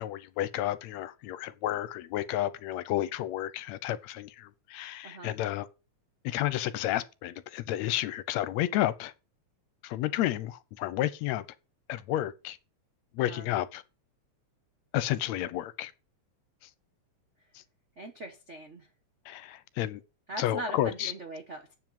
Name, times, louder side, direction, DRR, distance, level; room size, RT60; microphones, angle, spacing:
voice 1, 0.0-5.7 6.2-9.1 9.8-11.4 11.9-12.6 13.2-13.8 14.9-15.9 19.3-20.0 20.4-21.1, left 13 dB, 80° left, 1.9 m, -31 dB
voice 2, 5.0-5.4 13.2-13.5 18.0-18.9 20.3-21.7, right 2 dB, 80° right, 0.6 m, -41 dB
7.5 x 7.4 x 7.7 m
omnidirectional pair, 3.3 m